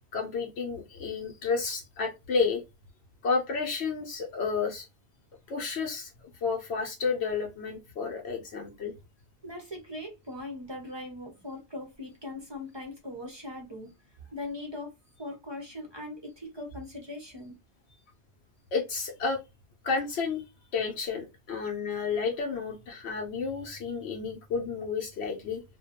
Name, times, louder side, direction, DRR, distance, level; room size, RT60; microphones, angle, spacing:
voice 1, 0.1-2.6 3.2-4.9 5.5-8.9 18.7-19.4 19.8-20.4 20.7-25.6, left 5 dB, 75° left, 0.8 m, -31 dB
voice 2, 9.4-13.9 14.3-14.9 15.2-17.6, left 2 dB, 35° right, 0.4 m, -40 dB
2.2 x 2.1 x 2.8 m
omnidirectional pair, 1.1 m